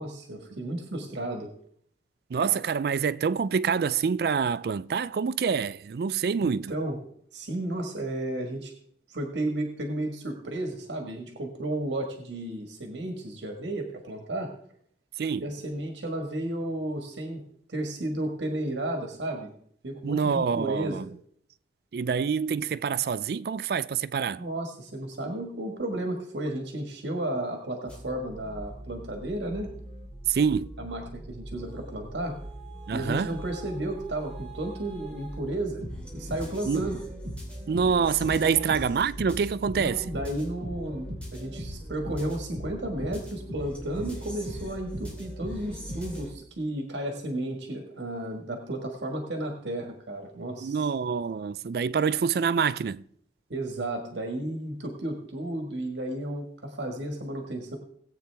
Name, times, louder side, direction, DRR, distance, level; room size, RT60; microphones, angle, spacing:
voice 1, 0.0-1.5 6.4-7.0 7.3-8.7 9.1-14.5 15.4-17.4 17.7-19.5 19.8-21.1 24.4-29.7 30.8-32.4 32.9-35.8 36.1-37.0 38.4-38.7 39.7-50.9 53.5-57.8, right 1 dB, 90° right, 1.5 m, -33 dB
voice 2, 2.3-6.7 15.2-15.5 20.0-21.0 21.9-24.4 30.3-30.7 32.9-33.3 36.7-36.9 37.7-40.0 50.6-53.0, right 6 dB, 60° right, 0.3 m, -26 dB
sound 1, 27.9-46.3, equal, 5° left, 3.0 m, -40 dB
18.0 x 8.4 x 3.4 m
head